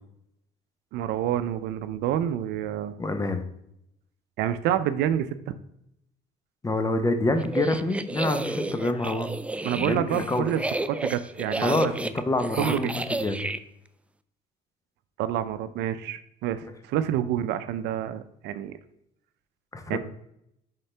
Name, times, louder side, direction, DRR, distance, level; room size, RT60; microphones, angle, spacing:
voice 1, 0.9-2.9 4.4-5.6 9.6-10.6 10.9-11.8 12.5-12.9 15.2-18.8 19.9-20.0, right 11 dB, 85° right, 12 dB, 0.5 m, -28 dB
voice 2, 3.0-3.4 6.6-9.3 9.8-10.5 11.6-13.5 16.6-16.7 19.7-20.0, left 2 dB, 20° left, 8 dB, 0.8 m, -27 dB
sound 1, 7.4-13.6, right 2 dB, 5° right, 0.3 m, -32 dB
9.8 x 3.8 x 3.3 m, 0.79 s
cardioid pair, 110°, 17 cm